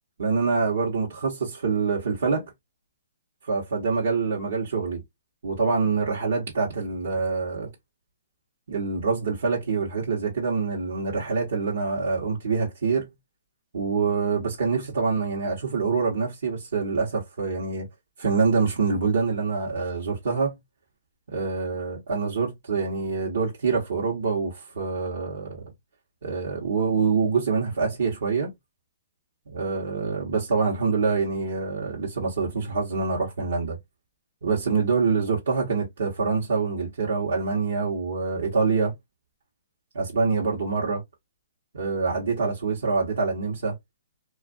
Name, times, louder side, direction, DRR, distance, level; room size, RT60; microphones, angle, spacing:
voice 1, 0.2-2.5 3.4-5.0 5.4-7.7 8.7-13.1 13.7-17.9 18.2-20.5 21.3-25.7 26.2-28.5 29.5-33.8 34.4-38.9 39.9-41.0 41.7-43.8, right 4 dB, 75° right, 1.0 m, -25 dB
2.5 x 2.4 x 2.4 m
hypercardioid pair, 145°, 0 cm